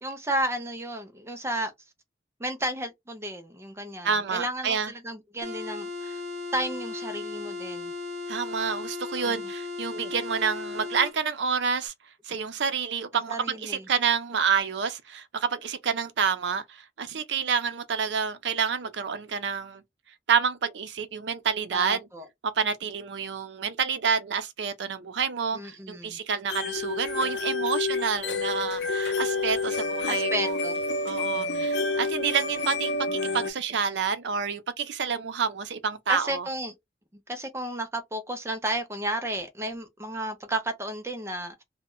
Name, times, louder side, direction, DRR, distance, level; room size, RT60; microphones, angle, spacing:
voice 1, 0.0-1.7 2.4-6.2 6.5-7.9 9.2-9.4 13.3-13.9 21.7-22.3 25.5-26.2 28.6-28.8 30.1-30.8 31.3-31.7 36.1-36.7 37.3-41.6, right 1 dB, 15° right, 0.4 m, -33 dB
voice 2, 4.0-4.9 8.3-11.9 12.3-19.8 20.3-22.1 22.4-30.6 31.0-36.5, right 6 dB, 85° right, 0.5 m, -28 dB
sound 1, 5.4-11.2, left 3 dB, 45° right, 0.8 m, -36 dB
sound 2, 26.5-33.5, left 3 dB, 75° left, 0.5 m, -29 dB
2.1 x 2.1 x 3.6 m
head